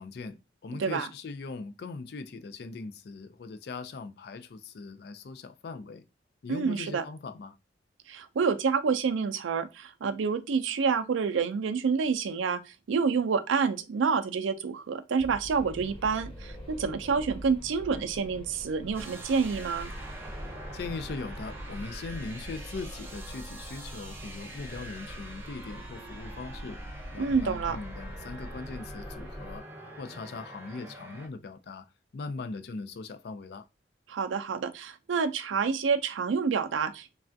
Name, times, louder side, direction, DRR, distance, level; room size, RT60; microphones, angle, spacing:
voice 1, 0.0-6.0 6.4-7.5 20.7-26.8 27.1-29.6 30.0-31.8 32.1-33.6, left 4 dB, 55° left, 0.3 m, -40 dB
voice 2, 6.5-7.0 8.1-19.9 27.2-27.8 34.1-37.2, right 5 dB, 90° right, 0.4 m, -28 dB
sound 1, 15.2-29.6, equal, 25° left, 1.1 m, -43 dB
sound 2, 18.9-31.3, right 1 dB, 10° right, 0.5 m, -46 dB
3.2 x 2.3 x 2.5 m
head